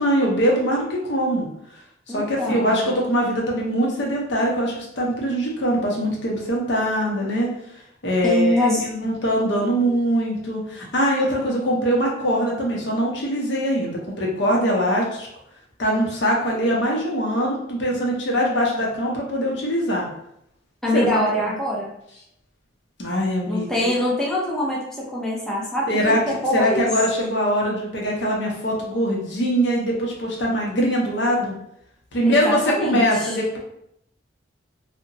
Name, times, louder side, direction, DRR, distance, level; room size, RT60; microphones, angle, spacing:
voice 1, 0.0-1.5 2.1-7.5 8.0-15.3 15.8-20.1 20.9-21.5 23.0-23.7 25.9-26.2 26.5-31.5 32.1-33.6, equal, 65° left, -2 dB, 0.7 m, -22 dB
voice 2, 2.1-2.8 8.2-8.8 20.8-21.9 23.5-26.9 32.2-33.3, left 1 dB, 5° left, -5 dB, 0.5 m, -24 dB
2.8 x 2.1 x 2.6 m, 0.75 s
head